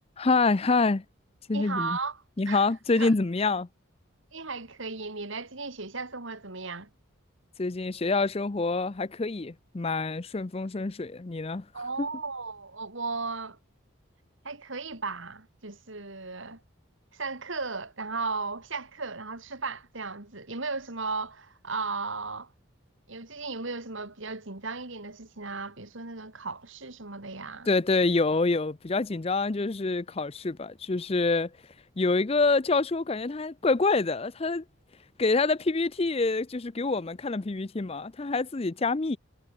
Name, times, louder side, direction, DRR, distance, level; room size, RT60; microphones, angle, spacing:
voice 1, 0.2-1.0 1.5-2.0 2.4-3.7 7.6-11.6 12.0-12.1 27.7-31.5 32.0-34.6 35.2-39.2, left 3 dB, 30° left, 0.5 m, -26 dB
voice 2, 1.5-2.6 2.9-3.1 4.3-6.9 11.7-13.6 14.4-16.6 17.1-22.5 23.1-27.7, right 4 dB, 65° right, 2.5 m, -35 dB
head